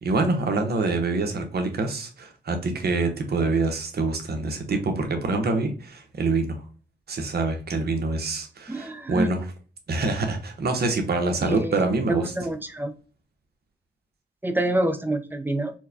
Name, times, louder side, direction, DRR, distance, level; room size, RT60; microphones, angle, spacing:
voice 1, 0.0-6.6 7.1-9.5 9.9-12.3, right 3 dB, 60° right, 5 dB, 0.9 m, -26 dB
voice 2, 8.7-9.3 11.4-11.7 12.1-12.9 14.4-15.7, right 1 dB, 10° right, 9 dB, 0.6 m, -26 dB
4.5 x 2.2 x 2.7 m, 0.37 s
cardioid pair, 60°, 18 cm